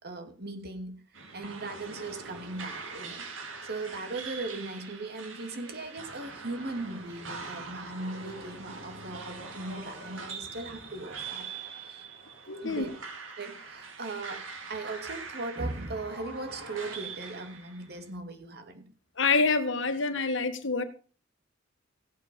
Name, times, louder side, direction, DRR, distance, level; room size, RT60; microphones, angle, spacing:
voice 1, 0.0-3.2 3.6-11.5 11.8-12.0 12.6-12.9 13.4-18.9, right 2 dB, 55° right, 2.6 m, -38 dB
sound 1, 1.1-18.0, right 4 dB, 85° right, 3.2 m, -43 dB
voice 2, 12.5-12.9 19.2-20.8, left 4 dB, 70° left, 1.7 m, -26 dB
16.0 x 8.7 x 5.4 m
head